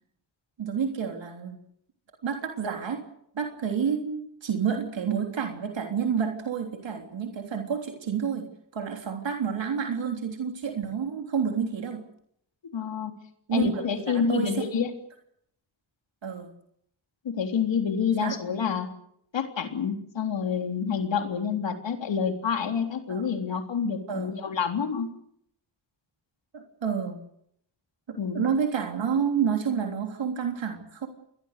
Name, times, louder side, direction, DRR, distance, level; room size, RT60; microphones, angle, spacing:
voice 1, 0.6-1.6 2.2-3.0 3.4-8.5 8.7-12.0 13.5-14.9 16.2-16.5 18.2-18.4 23.1-23.2 24.1-24.3 26.5-27.2 28.1-31.1, right 7 dB, 85° right, 3 dB, 3.5 m, -29 dB
voice 2, 12.7-13.1 13.5-14.9 17.2-18.9 19.3-25.1 28.2-28.5, left 6 dB, 80° left, 5 dB, 3.6 m, -28 dB
28.5 x 21.0 x 6.7 m, 0.71 s
cardioid pair, 80°, 44 cm